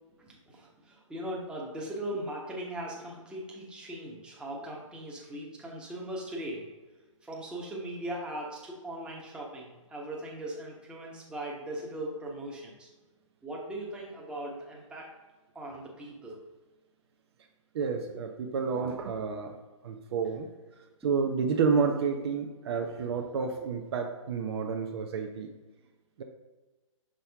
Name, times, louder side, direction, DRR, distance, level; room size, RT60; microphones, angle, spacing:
voice 1, 0.2-6.7 7.2-12.9 13.4-15.1 15.5-16.4 21.0-21.1, right 1 dB, 5° right, -3 dB, 1.1 m, -39 dB
voice 2, 17.7-19.6 19.8-20.5 21.0-25.5 26.2-26.3, right 5 dB, 50° right, 4 dB, 0.7 m, -30 dB
6.3 x 4.2 x 3.5 m, 1.2 s
hypercardioid pair, 135°, 17 cm